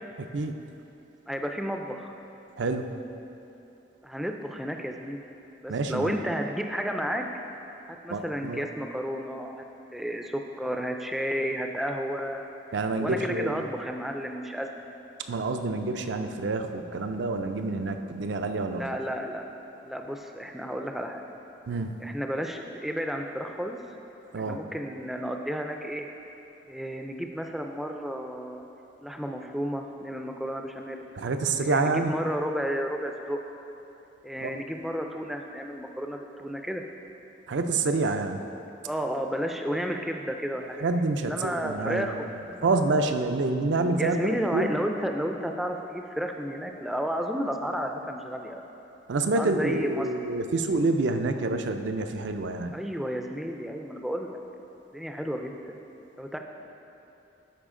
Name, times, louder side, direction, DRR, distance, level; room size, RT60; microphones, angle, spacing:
voice 1, 1.3-2.1 4.0-5.2 5.6-7.2 8.0-9.6 9.9-12.4 13.0-14.9 18.7-19.5 19.8-21.2 22.0-23.8 24.3-26.1 26.7-28.6 29.0-31.1 31.6-33.4 34.2-36.8 38.8-40.9 41.2-42.7 44.0-48.6 49.3-50.1 52.7-54.4 54.9-55.8 56.2-56.4, equal, ahead, 3 dB, 0.3 m, -32 dB
voice 2, 2.6-2.9 5.7-6.1 8.1-8.6 12.7-13.7 15.3-18.9 21.7-21.9 24.3-24.6 31.2-32.1 34.4-34.5 37.5-38.4 40.8-42.1 42.6-44.2 44.5-44.8 49.1-52.8, right 3 dB, 70° right, 6 dB, 0.5 m, -27 dB
12.0 x 4.9 x 3.7 m, 3.0 s
head